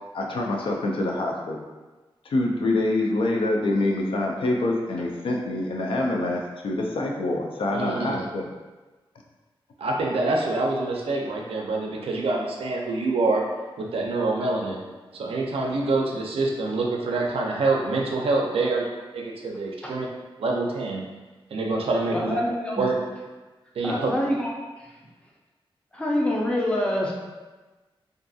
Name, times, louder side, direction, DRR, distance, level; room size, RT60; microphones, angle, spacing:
voice 1, 0.1-1.7 2.3-8.4, left 2 dB, 70° left, 0 dB, 0.4 m, -26 dB
voice 2, 7.7-8.2 9.8-13.4 13.8-14.8 15.1-18.8 19.1-20.1 20.4-21.0 21.5-22.4 22.8-22.9 23.8-24.1, right 3 dB, 85° right, -1 dB, 0.4 m, -26 dB
voice 3, 22.1-22.8 23.8-24.5 25.9-27.1, left 1 dB, 10° left, -3 dB, 0.4 m, -25 dB
2.5 x 2.3 x 2.6 m, 1.2 s
wide cardioid pair, 130°, 9 cm